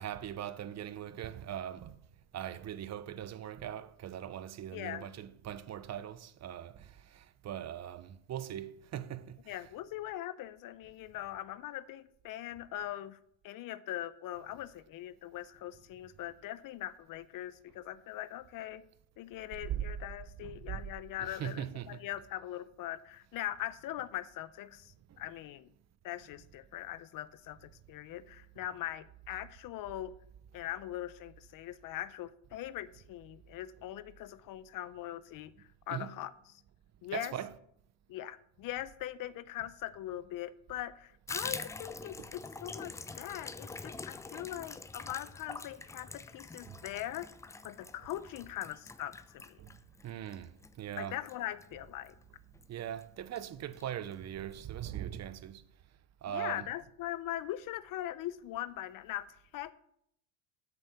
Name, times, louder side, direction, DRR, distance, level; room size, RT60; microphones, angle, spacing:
voice 1, 0.0-2.0 2.3-9.7 19.5-19.9 20.4-20.9 21.2-22.2 25.1-25.3 35.9-36.1 37.1-37.6 39.6-39.7 42.2-42.3 46.6-46.8 49.6-49.7 50.0-51.2 52.7-55.6 56.2-56.7, right 10 dB, 35° right, 0.7 m, -41 dB
voice 2, 4.7-5.1 9.5-13.2 13.4-18.8 19.2-25.7 26.0-30.1 30.5-36.3 37.0-37.3 38.1-47.3 47.6-49.6 51.0-52.2 56.3-59.7, left 13 dB, 45° left, 0.6 m, -41 dB
Water tap faucet / Bathtub (filling or washing), 41.3-52.2 52.5-52.7 53.0-53.1 53.4-53.9 54.1-54.2 54.5-54.6, left 3 dB, 10° left, 0.3 m, -45 dB
8.1 x 6.9 x 6.8 m
supercardioid pair, 95°, 46 cm